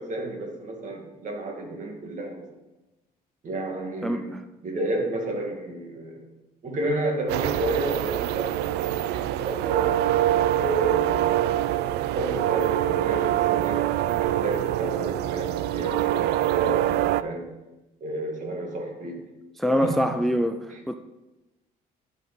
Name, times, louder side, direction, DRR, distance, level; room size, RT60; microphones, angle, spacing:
voice 1, 0.0-2.5 3.4-4.3 4.6-6.2 6.6-10.1 10.6-11.4 11.9-17.5 18.0-19.3 19.6-20.4 20.7-21.0, right 1 dB, 50° right, 1 dB, 2.5 m, -32 dB
voice 2, 4.0-4.4 19.6-21.0, equal, ahead, 8 dB, 0.4 m, -25 dB
sound 1, 7.3-17.2, right 13 dB, 90° right, 0.4 m, -24 dB
11.5 x 5.4 x 5.4 m, 1.0 s
cardioid pair, 110°, 17 cm